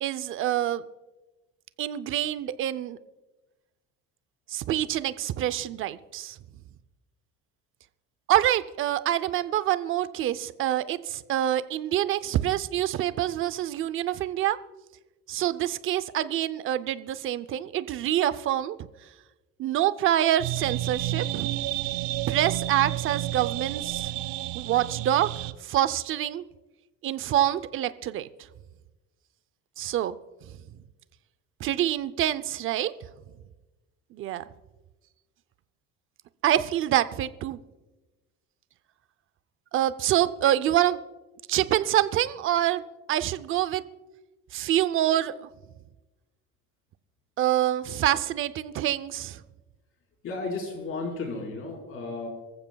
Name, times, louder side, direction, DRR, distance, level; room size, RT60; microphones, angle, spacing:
voice 1, 0.0-0.8 1.8-3.0 4.5-6.4 8.3-14.6 15.3-18.9 19.6-21.5 22.3-24.1 24.5-25.3 25.6-26.4 27.0-28.3 29.8-30.1 31.6-32.9 34.1-34.4 36.4-37.6 39.7-41.0 41.5-42.8 43.1-43.8 44.5-45.5 47.4-49.4, right 12 dB, 45° right, 14 dB, 0.6 m, -26 dB
sound 1, 20.4-25.5, right 14 dB, 85° right, 0.7 m, -31 dB
voice 2, 50.2-52.3, left 3 dB, 45° left, 1 dB, 4.6 m, -33 dB
24.0 x 14.5 x 2.3 m, 1.1 s
cardioid pair, 150°, 29 cm